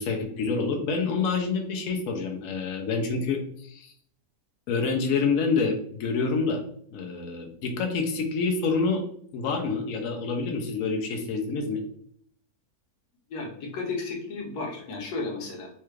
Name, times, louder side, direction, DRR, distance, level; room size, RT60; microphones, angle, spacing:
voice 1, 0.0-3.9 4.7-6.6 6.9-9.0 9.3-11.8, left 4 dB, 70° left, 2 dB, 0.9 m, -27 dB
voice 2, 13.3-15.7, left 3 dB, 90° left, 0 dB, 1.4 m, -33 dB
3.2 x 2.3 x 3.1 m, 0.64 s
omnidirectional pair, 1.6 m